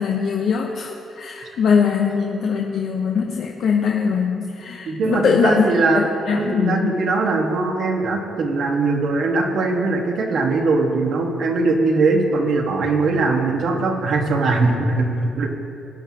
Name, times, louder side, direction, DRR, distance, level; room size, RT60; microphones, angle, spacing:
voice 1, 0.0-5.7 5.9-7.0, left 6 dB, 65° left, 0 dB, 0.8 m, -21 dB
voice 2, 4.9-6.0 6.3-15.5, right 3 dB, 70° right, 1 dB, 1.4 m, -20 dB
18.5 x 9.0 x 2.9 m, 2.7 s
cardioid pair, 90°, 0 cm